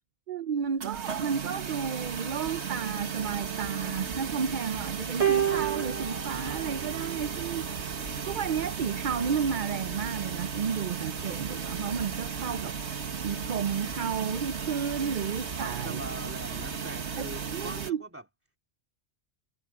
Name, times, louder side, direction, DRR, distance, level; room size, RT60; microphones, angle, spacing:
voice 1, 0.3-16.0 17.1-18.0, right 6 dB, 50° right, 0.7 m, -32 dB
sound 1, 0.8-17.9, right 6 dB, 70° right, 1.7 m, -35 dB
sound 2, 5.2-7.7 8.7-8.9, right 9 dB, 30° right, 1.3 m, -30 dB
voice 2, 15.6-18.3, right 1 dB, 10° right, 3.1 m, -42 dB
omnidirectional pair, 1.2 m